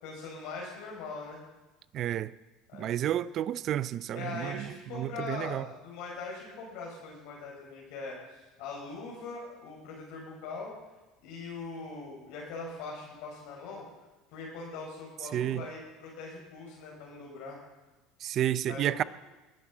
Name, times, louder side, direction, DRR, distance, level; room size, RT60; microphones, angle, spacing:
voice 1, 0.0-1.4 2.7-2.9 4.1-10.7 11.2-13.8 14.3-17.6 18.7-19.1, left 4 dB, 75° left, 4.7 m, -41 dB
voice 2, 1.9-2.3 2.7-4.7 4.9-5.7 15.3-15.6 18.2-19.0, right 11 dB, 50° right, 0.5 m, -31 dB
20.0 x 7.6 x 7.2 m
supercardioid pair, 110°, 0 cm